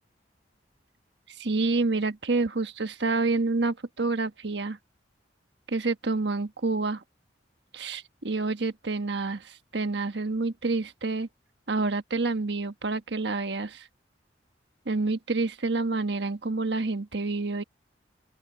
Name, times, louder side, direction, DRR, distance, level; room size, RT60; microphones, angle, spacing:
voice 1, 1.3-4.8 5.7-7.0 7.7-11.3 11.7-13.9 14.9-17.6, right 3 dB, 75° right, 1.3 m, -28 dB
open air
head